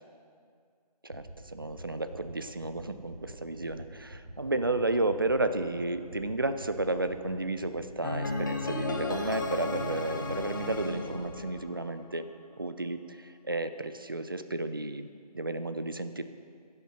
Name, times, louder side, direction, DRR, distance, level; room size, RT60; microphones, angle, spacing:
voice 1, 1.0-12.3 12.6-16.3, right 2 dB, 35° right, 10 dB, 0.4 m, -32 dB
sound 1, 1.1-1.3 1.6-1.8 2.1-2.3 2.6-2.8 3.1-3.3 3.6-3.8 4.1-4.3 4.6-4.8 5.1-5.3 5.6-5.8 6.1-6.3 6.6-6.8 7.1-7.3 7.6-7.8 8.1-8.3 8.6-8.8 9.1-9.3 9.6-9.8 10.1-10.3 10.6-10.8 11.1-11.3, right 1 dB, 80° right, 2.9 m, -44 dB
sound 2, 8.0-12.1, left 2 dB, 30° left, 0.7 m, -34 dB
11.0 x 7.5 x 5.6 m, 2.2 s
figure-of-eight pair, 160°, 21 cm